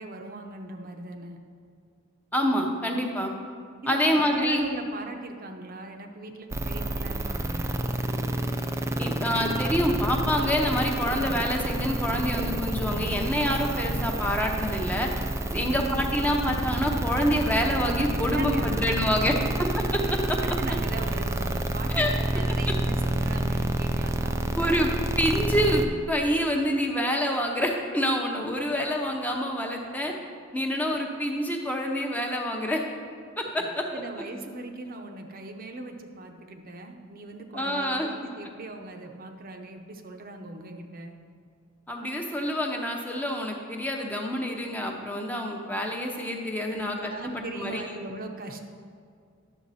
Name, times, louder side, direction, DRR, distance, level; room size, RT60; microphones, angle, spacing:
voice 1, 0.0-1.4 3.8-7.8 15.5-15.9 18.2-19.4 20.4-24.8 33.6-41.2 46.7-48.6, right 2 dB, 45° right, 4 dB, 0.8 m, -39 dB
voice 2, 2.3-3.3 3.9-4.7 9.0-15.1 15.5-19.3 19.9-20.4 21.9-22.1 24.5-24.9 25.2-30.1 30.5-32.8 33.4-33.8 37.5-38.1 41.9-47.8, equal, 10° left, 1 dB, 0.8 m, -27 dB
sound 1, 6.5-25.9, right 1 dB, 15° right, 0.4 m, -29 dB
11.0 x 7.0 x 4.2 m, 2.2 s
head